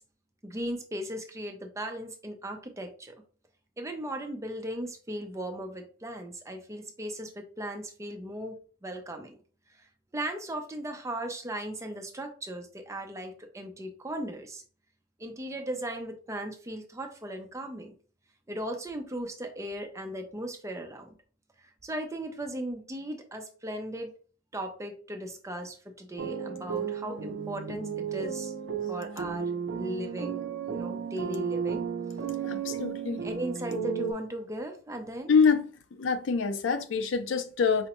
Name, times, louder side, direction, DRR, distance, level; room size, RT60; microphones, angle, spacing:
voice 1, 0.4-3.1 3.8-9.4 9.8-14.6 15.2-17.9 18.5-21.1 21.6-24.1 24.5-28.5 28.9-29.5 29.8-30.4 30.7-31.9 33.2-35.3, right 1 dB, 15° right, 0.6 m, -37 dB
sound 1, 26.2-34.1, right 7 dB, 80° right, 0.5 m, -34 dB
voice 2, 32.4-33.2 35.3-35.7 36.0-37.9, left 5 dB, 75° left, 0.5 m, -25 dB
4.8 x 2.1 x 3.0 m
head